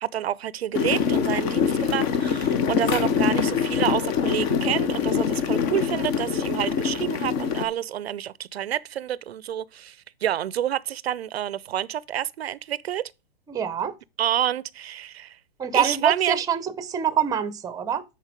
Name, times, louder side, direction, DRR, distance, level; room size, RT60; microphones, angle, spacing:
voice 1, 0.0-10.0 10.2-13.0 14.2-15.4 15.7-16.4, right 11 dB, 85° right, 0.5 m, -28 dB
sound 1, 0.7-7.6, left 7 dB, 40° left, 1.1 m, -24 dB
voice 2, 13.5-13.9 15.6-18.0, right 8 dB, 10° right, 0.7 m, -25 dB
9.9 x 4.3 x 5.0 m
hypercardioid pair, 125°, 30 cm